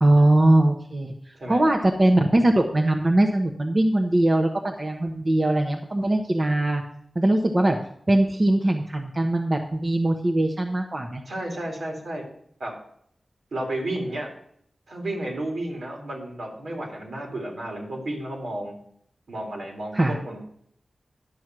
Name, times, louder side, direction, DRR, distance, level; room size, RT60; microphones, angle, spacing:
voice 1, 0.0-1.1 1.5-6.8 7.1-7.8 8.1-11.2 19.9-20.2, right 1 dB, 40° right, 3 dB, 1.0 m, -21 dB
voice 2, 11.3-12.2 12.6-12.7 13.5-14.3 14.9-18.7 19.3-20.4, right 1 dB, 80° right, 0 dB, 3.1 m, -32 dB
11.0 x 6.2 x 6.1 m, 0.67 s
cardioid pair, 50°, 0 cm